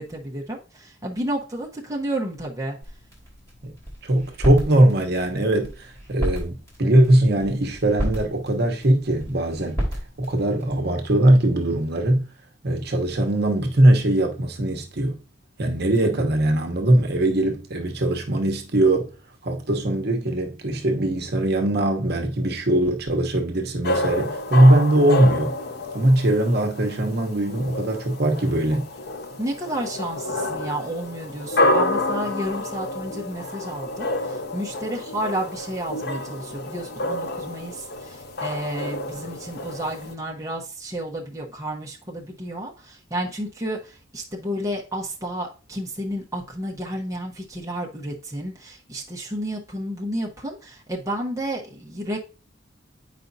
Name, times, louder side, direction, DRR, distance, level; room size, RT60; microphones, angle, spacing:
voice 1, 0.0-2.8 29.4-52.2, right 1 dB, 15° right, 0.9 m, -31 dB
sound 1, 2.8-10.8, equal, 15° left, 3.2 m, -32 dB
voice 2, 4.0-9.8 10.2-12.2 12.6-15.2 15.6-19.1 19.4-25.5 25.9-28.9, right 1 dB, 50° right, 1.0 m, -20 dB
sound 2, 23.8-40.1, left 1 dB, 55° left, 0.6 m, -29 dB
8.3 x 5.1 x 2.7 m
head